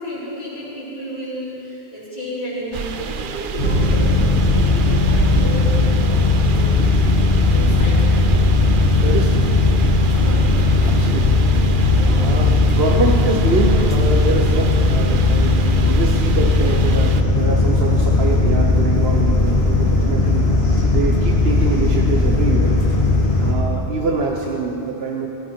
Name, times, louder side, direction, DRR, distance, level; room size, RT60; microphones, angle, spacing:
voice 1, 0.0-6.7 7.5-8.2 10.2-10.6 11.3-11.4 12.0-12.4 15.4-15.8 16.6-16.8 19.3-19.8, equal, 50° left, -13 dB, 4.7 m, -32 dB
sound 1, 2.7-17.2, right 7 dB, 60° right, 0.8 m, -28 dB
sound 2, 3.6-23.5, left 3 dB, 75° left, 2.1 m, -17 dB
voice 2, 9.0-9.5 10.8-11.4 12.2-15.6 15.8-20.5 20.9-22.8 23.4-25.3, right 3 dB, 75° right, 0 dB, 1.3 m, -24 dB
17.5 x 15.0 x 4.5 m, 2.9 s
omnidirectional pair, 1.0 m